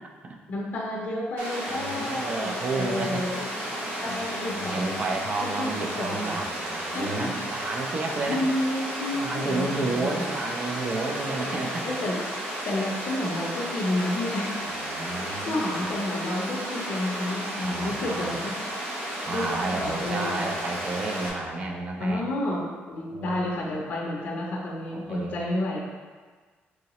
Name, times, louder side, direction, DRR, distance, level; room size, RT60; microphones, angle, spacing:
voice 1, 0.5-3.5 4.0-5.0 5.4-6.4 6.9-7.3 8.3-10.2 11.1-12.2 12.6-14.7 15.2-18.9 19.3-20.4 22.0-25.8, left 1 dB, 45° left, -3 dB, 0.5 m, -31 dB
Water, 1.4-21.3, right 1 dB, 80° right, 0.9 m, -33 dB
voice 2, 1.7-3.2 4.1-8.4 9.1-11.9 14.7-15.9 17.6-18.3 19.3-22.3 23.1-23.6 24.9-25.4, right 3 dB, 35° right, 2 dB, 0.4 m, -32 dB
3.8 x 2.9 x 2.9 m, 1.5 s
cardioid pair, 150°, 4 cm